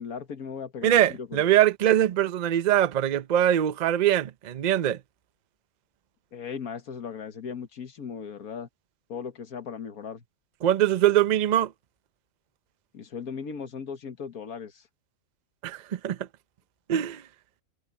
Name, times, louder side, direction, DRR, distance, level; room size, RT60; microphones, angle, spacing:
voice 1, 0.0-1.4 6.3-8.7 9.1-10.2 12.9-14.8, left 6 dB, 85° left, 1.9 m, -37 dB
voice 2, 0.8-5.0 10.6-11.7 15.6-16.2 16.9-17.2, right 11 dB, 50° right, 0.5 m, -22 dB
omnidirectional pair, 1.5 m